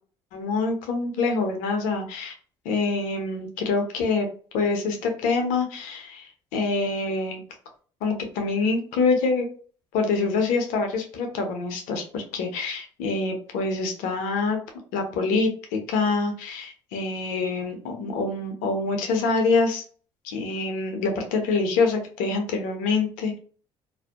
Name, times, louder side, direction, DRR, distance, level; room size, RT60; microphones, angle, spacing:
voice 1, 0.3-2.3 2.6-4.3 4.5-7.4 8.0-9.5 9.9-14.6 14.9-19.8 20.2-23.4, left 4 dB, 75° left, 4 dB, 0.7 m, -25 dB
2.5 x 2.1 x 2.3 m, 0.42 s
hypercardioid pair, 65°, 13 cm